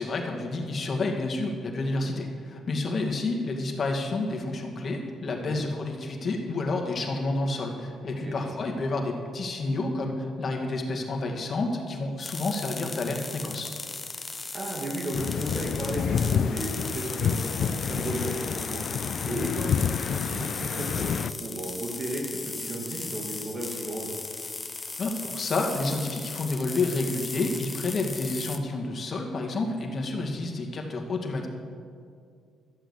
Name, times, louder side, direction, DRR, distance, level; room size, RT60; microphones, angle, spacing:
voice 1, 0.0-13.7 25.0-31.5, left 2 dB, 45° left, 1 dB, 2.2 m, -29 dB
voice 2, 5.3-5.6 8.1-8.5 14.5-18.8 19.2-24.1, right 1 dB, 45° right, -1 dB, 2.3 m, -34 dB
sound 1, 12.2-28.6, left 3 dB, 25° left, 1.0 m, -37 dB
sound 2, 15.1-21.3, left 7 dB, 65° left, 0.3 m, -29 dB
12.5 x 8.1 x 8.1 m, 2.3 s
cardioid pair, 90°, 0 cm